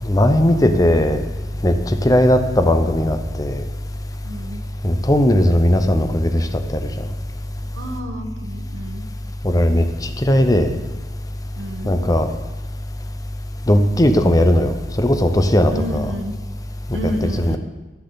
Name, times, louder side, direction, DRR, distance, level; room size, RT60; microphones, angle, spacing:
voice 1, 0.0-1.2 1.6-3.6 4.8-7.1 9.4-10.8 11.8-12.3 13.7-16.0 17.4-17.6, left 1 dB, 20° left, 0.7 m, -17 dB
voice 2, 4.2-4.6 7.7-9.0 11.6-11.9 15.7-16.3 16.9-17.6, equal, 85° right, 1.2 m, -29 dB
12.0 x 9.9 x 4.0 m
head